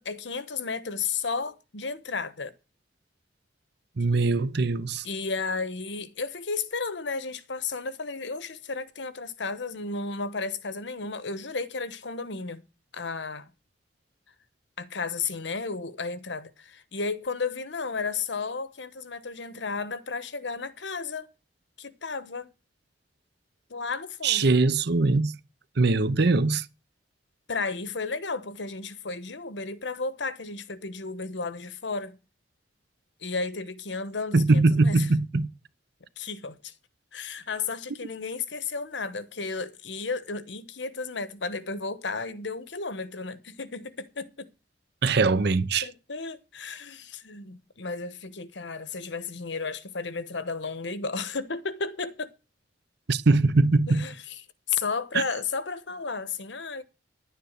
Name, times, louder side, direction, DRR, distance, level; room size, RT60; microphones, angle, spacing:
voice 1, 0.0-2.5 5.0-12.6 12.9-13.5 14.8-21.3 21.8-22.5 23.7-24.5 27.5-32.2 33.2-35.1 36.2-36.7 37.1-44.5 45.8-52.3 53.9-54.3 54.7-56.8, left 4 dB, 75° left, 1.1 m, -33 dB
voice 2, 4.0-5.0 24.2-25.3 25.8-26.7 34.3-35.5 45.0-45.9 53.1-54.0 55.1-55.2, right 3 dB, 65° right, 0.8 m, -22 dB
10.5 x 9.4 x 6.5 m
head